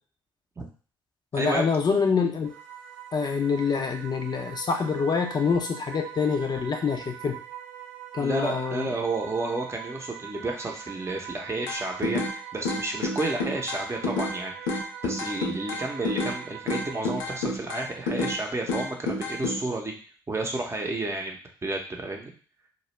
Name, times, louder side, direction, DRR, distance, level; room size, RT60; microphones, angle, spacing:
voice 1, 1.3-2.5 3.1-7.4 8.1-8.9, left 5 dB, 40° left, 3 dB, 0.5 m, -26 dB
sound 1, 2.4-17.2, right 11 dB, 80° right, 0.8 m, -43 dB
voice 2, 8.2-19.9 20.3-22.3, right 2 dB, 25° right, 1 dB, 0.7 m, -31 dB
sound 2, 11.7-12.4 12.7-14.4 14.7-16.4 16.7-18.4 18.7-19.6, left 2 dB, 85° left, 0.5 m, -29 dB
2.4 x 2.0 x 3.1 m, 0.41 s
hypercardioid pair, 50°, 11 cm